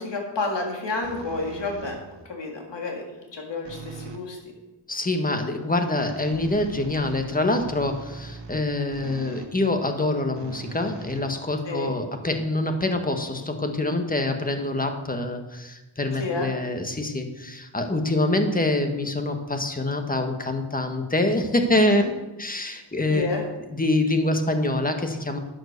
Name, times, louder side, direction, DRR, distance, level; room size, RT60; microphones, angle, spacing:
voice 1, 0.0-2.0 2.3-3.0 3.3-4.4 11.7-11.9 16.2-16.5 21.7-22.1 23.1-23.4, left 3 dB, 70° left, 1 dB, 3.5 m, -30 dB
sound 1, 1.0-2.3 3.6-4.3 6.0-9.6 10.3-11.8, right 3 dB, 65° right, 1.7 m, -41 dB
voice 2, 4.9-22.0 22.4-23.3 23.7-25.4, left 2 dB, 20° left, 5 dB, 1.6 m, -25 dB
12.0 x 9.3 x 6.7 m, 1.0 s
wide cardioid pair, 130°, 44 cm